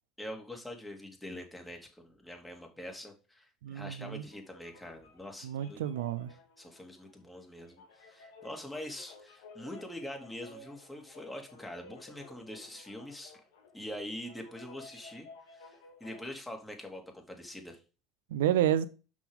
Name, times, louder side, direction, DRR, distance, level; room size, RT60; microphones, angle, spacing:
voice 1, 0.2-5.8 6.3-13.4 13.7-17.8, left 1 dB, 10° left, 2.4 m, -44 dB
voice 2, 3.6-4.2 5.4-6.3 18.3-18.9, right 11 dB, 85° right, 0.5 m, -29 dB
sound 1, 4.2-16.3, left 3 dB, 85° left, 1.8 m, -55 dB
6.1 x 5.9 x 3.6 m
hypercardioid pair, 75°, 0 cm